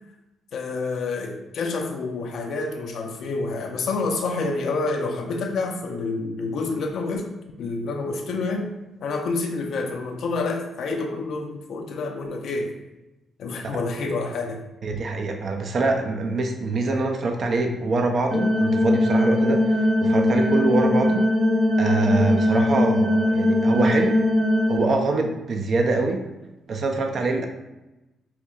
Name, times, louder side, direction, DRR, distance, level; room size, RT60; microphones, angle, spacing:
voice 1, 0.5-7.3 7.6-8.7 9.0-12.8 13.4-14.6, left 3 dB, 70° left, 3 dB, 0.4 m, -28 dB
voice 2, 14.8-21.2 21.8-24.2 24.7-26.2 26.7-27.5, right 3 dB, 55° right, 4 dB, 0.4 m, -24 dB
sound 1, 18.3-24.8, left 1 dB, ahead, 0.7 m, -20 dB
4.2 x 2.7 x 2.4 m, 0.99 s
cardioid pair, 90°, 0 cm